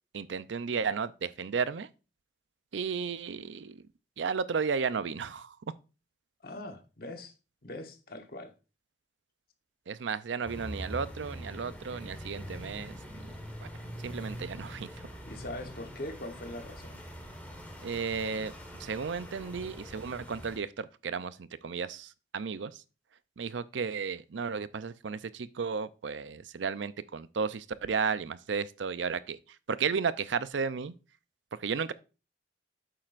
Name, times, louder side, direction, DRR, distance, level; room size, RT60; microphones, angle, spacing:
voice 1, 0.1-1.9 2.7-3.8 4.2-5.6 9.9-13.0 13.6-13.7 14.0-15.1 17.8-18.5 18.8-22.8 23.4-29.4 29.7-30.9 31.6-31.9, right 5 dB, 90° right, 0.5 m, -33 dB
voice 2, 6.4-7.3 7.6-8.5 15.3-17.0, left 1 dB, 55° left, 1.1 m, -41 dB
sound 1, 10.4-20.6, equal, 10° left, 1.4 m, -44 dB
8.8 x 7.6 x 2.5 m
head